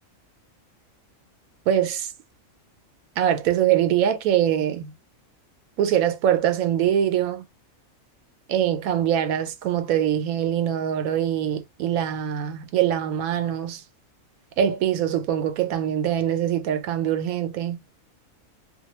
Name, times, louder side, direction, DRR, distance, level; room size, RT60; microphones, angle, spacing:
voice 1, 1.7-2.1 3.2-5.0 5.8-7.4 8.5-13.8 14.6-17.8, right 10 dB, 90° right, 1.1 m, -23 dB
2.6 x 2.3 x 2.9 m
omnidirectional pair, 1.4 m